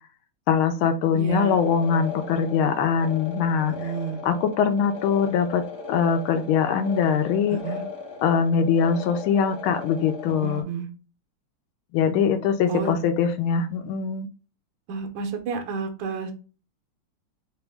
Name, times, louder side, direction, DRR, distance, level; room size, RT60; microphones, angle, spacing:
voice 1, 0.5-3.7 4.2-7.6 8.2-10.6 11.9-14.3, left 6 dB, 80° left, 7 dB, 1.4 m, -22 dB
voice 2, 1.1-1.6 3.7-4.2 7.5-7.8 10.4-10.9 12.7-12.9 14.9-16.3, right 6 dB, 70° right, 4 dB, 1.4 m, -30 dB
sound 1, 1.3-10.6, left 5 dB, 45° left, 1.0 m, -37 dB
3.8 x 3.0 x 3.3 m, 0.34 s
omnidirectional pair, 2.3 m